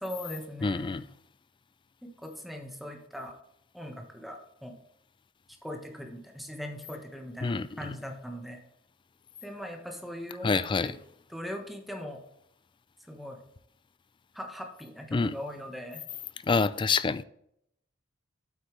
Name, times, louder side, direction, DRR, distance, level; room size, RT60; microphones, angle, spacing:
voice 1, 0.0-1.0 2.0-3.3 3.7-4.8 5.6-8.6 9.4-10.9 11.3-12.2 13.0-13.4 14.3-16.0, equal, ahead, 1.3 m, -40 dB
voice 2, 0.6-1.0 7.4-7.7 10.4-10.9 15.1-15.3 16.5-17.2, left 4 dB, 25° left, 0.3 m, -26 dB
8.8 x 8.0 x 3.2 m
head